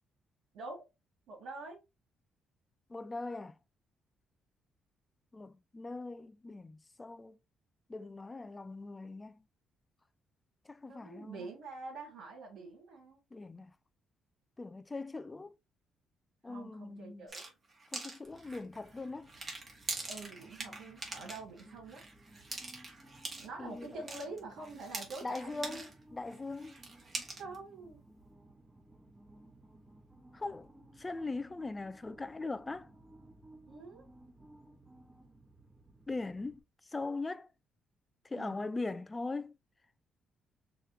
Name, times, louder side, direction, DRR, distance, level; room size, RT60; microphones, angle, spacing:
voice 1, 1.3-1.8 10.9-13.2 16.4-17.5 20.1-22.0 23.4-25.8 27.4-28.0 33.7-34.0 38.3-38.6, right 3 dB, 85° right, 2.6 m, -46 dB
voice 2, 2.9-3.6 5.3-7.4 7.9-9.4 10.7-11.5 13.3-13.7 14.6-15.5 16.4-17.3 17.9-19.3 23.6-24.1 25.2-26.8 30.3-30.7 31.0-32.9 36.1-37.5 38.2-39.6, left 3 dB, 20° left, 0.4 m, -41 dB
sound 1, 17.3-26.0 26.3-27.6, right 3 dB, 40° right, 1.8 m, -44 dB
sound 2, 18.2-36.6, right 1 dB, 20° right, 1.3 m, -59 dB
4.8 x 3.2 x 3.1 m
cardioid pair, 90°, 0 cm